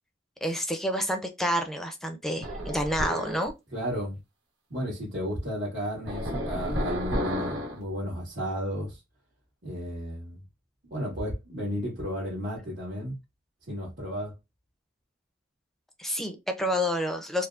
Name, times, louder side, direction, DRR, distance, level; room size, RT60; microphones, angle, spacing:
voice 1, 0.4-3.5 16.0-17.5, equal, ahead, 0.5 m, -29 dB
sound 1, 2.4-3.5 6.1-7.8, equal, 90° right, 1.2 m, -31 dB
voice 2, 3.7-4.2 4.7-9.0 9.6-10.4 10.9-13.1 13.7-14.3, equal, 60° right, 1.8 m, -33 dB
4.4 x 2.0 x 2.4 m
head